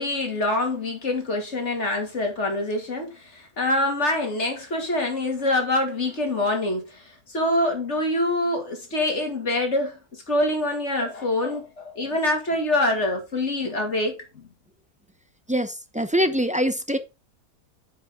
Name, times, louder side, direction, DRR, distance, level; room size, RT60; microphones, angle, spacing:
voice 1, 0.0-14.5, left 1 dB, 50° left, 2.8 m, -25 dB
voice 2, 15.5-17.0, equal, 10° right, 0.3 m, -23 dB
9.7 x 5.7 x 3.8 m
omnidirectional pair, 1.6 m